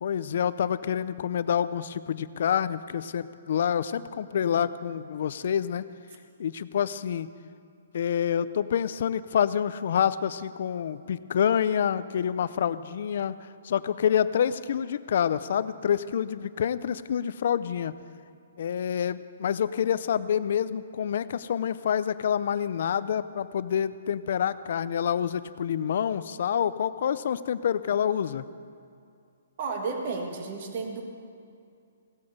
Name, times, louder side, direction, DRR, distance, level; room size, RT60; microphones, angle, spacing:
voice 1, 0.0-5.9 6.4-7.3 7.9-17.9 18.6-28.4, left 8 dB, 55° left, 15 dB, 0.5 m, -27 dB
voice 2, 29.6-31.0, right 4 dB, 45° right, 2 dB, 2.0 m, -32 dB
16.5 x 8.8 x 8.0 m, 2.4 s
hypercardioid pair, 165°, 0 cm